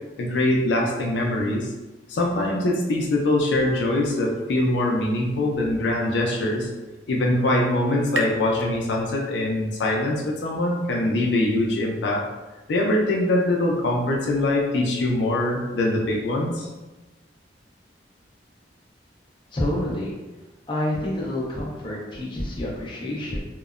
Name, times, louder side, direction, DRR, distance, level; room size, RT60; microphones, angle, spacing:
voice 1, 0.2-1.7 2.1-6.7 7.1-12.2 12.7-16.7, left 1 dB, 75° left, -2 dB, 0.4 m, -23 dB
sound 1, 6.7-10.1, right 1 dB, 75° right, 0.3 m, -37 dB
voice 2, 19.5-20.2 20.7-23.4, left 1 dB, 25° left, -5 dB, 0.6 m, -28 dB
2.8 x 2.0 x 2.4 m, 1.1 s
head